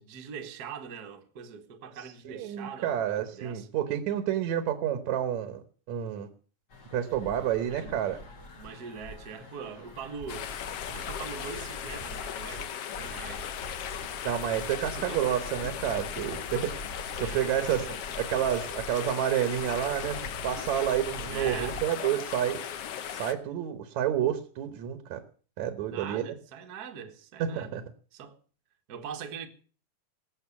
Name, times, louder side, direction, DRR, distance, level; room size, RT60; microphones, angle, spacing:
voice 1, 0.0-3.7 7.7-8.0 8.6-10.5 10.9-13.5 14.8-15.4 17.2-18.0 21.3-21.8 25.8-27.8 28.1-28.4 28.9-29.5, right 6 dB, 45° right, 1.4 m, -42 dB
voice 2, 2.3-6.3 6.9-8.2 14.2-16.8 17.1-17.9 18.2-22.6 23.1-25.2 25.6-26.2 27.4-27.8, right 10 dB, 65° right, 2.3 m, -29 dB
sound 1, 6.7-21.9, equal, 40° left, 1.8 m, -45 dB
sound 2, 10.3-23.3, left 9 dB, 65° left, 1.6 m, -37 dB
18.5 x 7.7 x 7.1 m
omnidirectional pair, 3.7 m